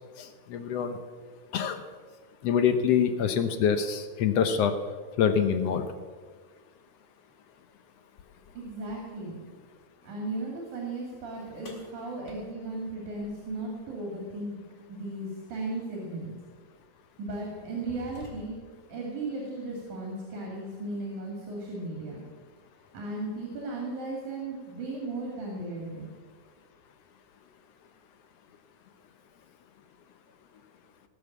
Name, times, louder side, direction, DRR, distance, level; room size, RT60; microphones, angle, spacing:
voice 1, 0.2-1.0 1.5-1.8 2.4-4.7 5.2-5.9, left 7 dB, 70° left, 8 dB, 1.6 m, -25 dB
voice 2, 8.6-9.4 10.0-14.5 14.9-16.4 17.2-18.6 18.9-22.2 22.9-26.0, right 2 dB, 80° right, -1 dB, 3.8 m, -36 dB
wooden door w loose knob, 11.6-13.8 15.7-15.8 16.6-16.8 17.3-18.8, left 3 dB, 25° left, 2.5 m, -50 dB
18.5 x 7.0 x 7.2 m, 1.5 s
omnidirectional pair, 3.5 m